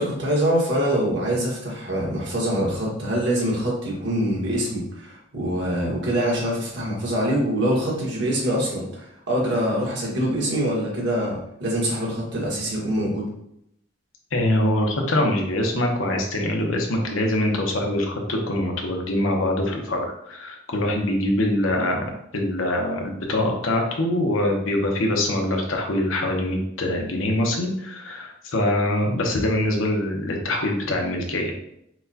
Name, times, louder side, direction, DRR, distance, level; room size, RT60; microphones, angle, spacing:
voice 1, 0.0-13.2, equal, 60° right, -4 dB, 1.5 m, -24 dB
voice 2, 14.3-22.0 22.3-31.5, left 1 dB, 90° left, 1 dB, 0.9 m, -24 dB
5.9 x 2.3 x 2.8 m, 0.77 s
head